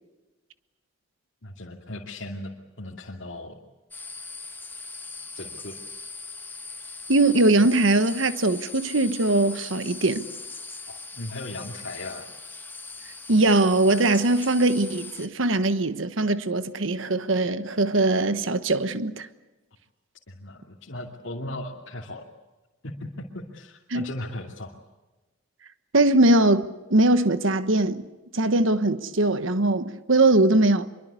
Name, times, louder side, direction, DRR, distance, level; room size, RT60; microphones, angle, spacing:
voice 1, 1.4-3.6 5.3-5.8 10.9-12.3 20.3-22.3 22.8-24.8, left 1 dB, 65° left, 2.6 m, -37 dB
sound 1, 3.9-15.3, left 3 dB, 10° left, 1.3 m, -40 dB
voice 2, 7.1-10.3 13.3-19.3 23.9-24.1 25.9-26.6 26.9-28.0 28.3-30.9, right 2 dB, 70° right, 1.3 m, -21 dB
25.0 x 23.5 x 8.4 m
head